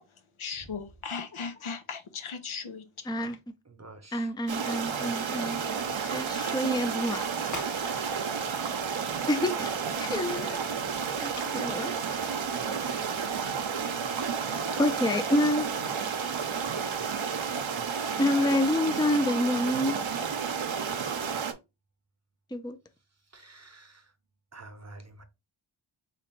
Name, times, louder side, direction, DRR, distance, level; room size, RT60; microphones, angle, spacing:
voice 1, 0.4-3.1, left 5 dB, 75° left, 0.7 m, -37 dB
voice 2, 3.1-3.4 4.1-5.6 6.0-7.5 9.3-9.7 10.0-10.7 11.2-11.9 14.8-15.7 18.2-20.0 22.5-22.8, left 1 dB, 10° left, 0.5 m, -28 dB
voice 3, 3.6-4.3 23.2-24.1 24.5-25.2, right 2 dB, 30° right, 0.8 m, -49 dB
sound 1, 4.5-21.5, right 6 dB, 65° right, 0.7 m, -31 dB
sound 2, 7.4-12.6, left 1 dB, 35° left, 1.0 m, -47 dB
3.1 x 2.5 x 4.4 m
wide cardioid pair, 40°, 50 cm